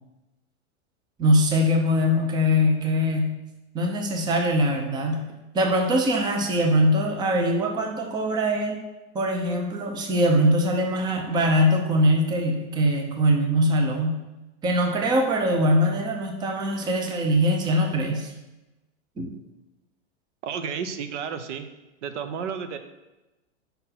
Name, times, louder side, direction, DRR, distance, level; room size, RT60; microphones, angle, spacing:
voice 1, 1.2-3.3 3.7-5.3 5.5-8.8 9.1-14.2 14.6-18.3 19.2-19.3, equal, 10° right, 3 dB, 0.6 m, -22 dB
voice 2, 20.4-21.7 22.0-22.8, right 7 dB, 75° right, 9 dB, 0.8 m, -32 dB
5.4 x 4.3 x 5.7 m, 1.0 s
supercardioid pair, 145°, 36 cm